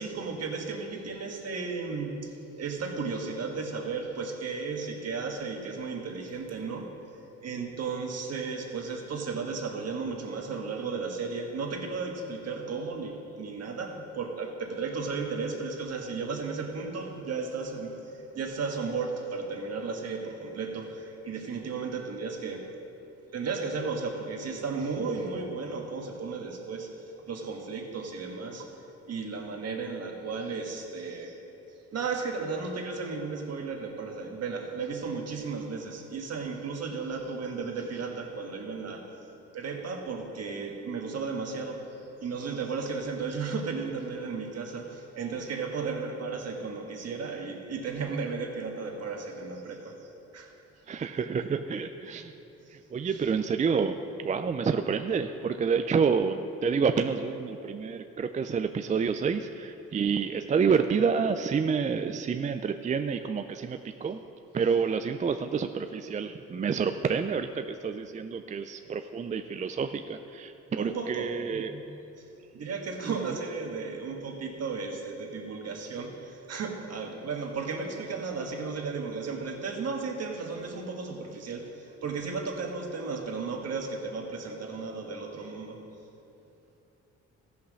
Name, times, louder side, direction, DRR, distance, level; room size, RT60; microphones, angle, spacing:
voice 1, 0.0-7.0 7.4-22.7 23.3-28.8 29.1-31.4 31.9-39.2 39.5-50.5 52.6-52.7 53.1-53.3 70.7-72.2 72.5-85.9, right 4 dB, 55° right, 2 dB, 1.6 m, -34 dB
voice 2, 50.9-52.3 52.9-54.0 54.2-64.2 64.5-71.7, right 6 dB, 25° right, 8 dB, 0.4 m, -28 dB
14.0 x 5.8 x 6.3 m, 3.0 s
cardioid pair, 90°, 30 cm